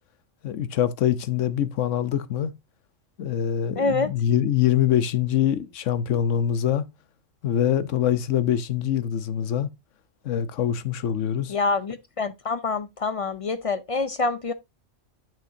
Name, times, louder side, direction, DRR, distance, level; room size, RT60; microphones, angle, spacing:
voice 1, 0.4-2.5 3.2-6.8 7.4-9.7 10.2-11.5, left 10 dB, 80° left, 1.1 m, -24 dB
voice 2, 3.8-4.1 11.5-14.5, left 3 dB, 50° left, 0.4 m, -26 dB
8.5 x 7.0 x 2.6 m
omnidirectional pair, 1.3 m